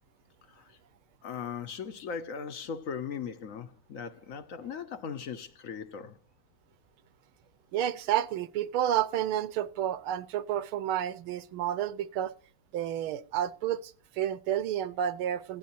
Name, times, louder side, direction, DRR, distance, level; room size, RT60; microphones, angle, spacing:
voice 1, 0.5-0.8 1.2-6.2, left 6 dB, 50° left, 1.0 m, -39 dB
voice 2, 7.7-12.3 12.7-15.6, right 11 dB, 85° right, 1.6 m, -30 dB
16.0 x 10.5 x 2.7 m
omnidirectional pair, 2.3 m